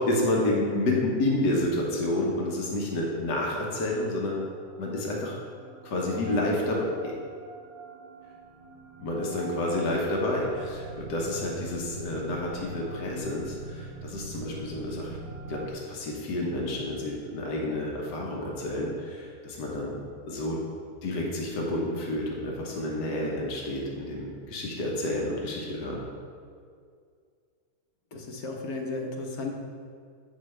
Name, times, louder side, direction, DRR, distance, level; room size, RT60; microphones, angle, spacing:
voice 1, 0.0-4.4 4.8-5.4 5.8-7.1 9.0-15.2 15.5-20.0 20.3-20.6 21.0-26.0, left 1 dB, 85° left, -2 dB, 1.6 m, -29 dB
sound 1, 4.5-15.7, right 3 dB, 85° right, 1.2 m, -43 dB
voice 2, 28.1-29.5, left 3 dB, 65° left, 1 dB, 1.3 m, -34 dB
8.6 x 6.0 x 3.3 m, 2.2 s
omnidirectional pair, 1.7 m